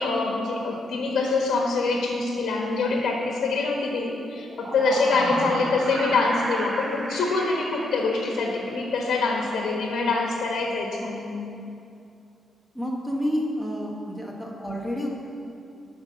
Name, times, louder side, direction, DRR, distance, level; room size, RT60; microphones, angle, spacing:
voice 1, 0.0-11.5, left 3 dB, 75° left, 0 dB, 1.4 m, -25 dB
sound 1, 4.3-8.8, right 2 dB, 30° right, 0.8 m, -34 dB
voice 2, 5.0-5.6 12.7-15.1, equal, ahead, -3 dB, 1.1 m, -30 dB
8.7 x 5.4 x 7.2 m, 2.6 s
wide cardioid pair, 170°, 0 cm